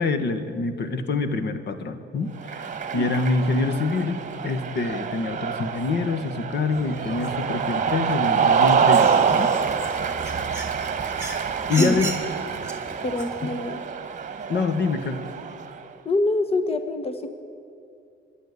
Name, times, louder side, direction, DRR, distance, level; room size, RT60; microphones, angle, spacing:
voice 1, 0.0-9.5 11.7-12.1 13.4-13.5 14.5-15.2, left 3 dB, 60° left, 9 dB, 1.8 m, -26 dB
Cheering, 2.4-15.8, right 7 dB, 40° right, 1.3 m, -26 dB
sound 1, 6.7-13.4, right 2 dB, 15° right, 4.2 m, -37 dB
voice 2, 13.0-13.8 16.0-17.3, left 2 dB, 30° left, 8 dB, 1.3 m, -25 dB
24.5 x 11.0 x 10.0 m, 2.5 s
cardioid pair, 90°, 20 cm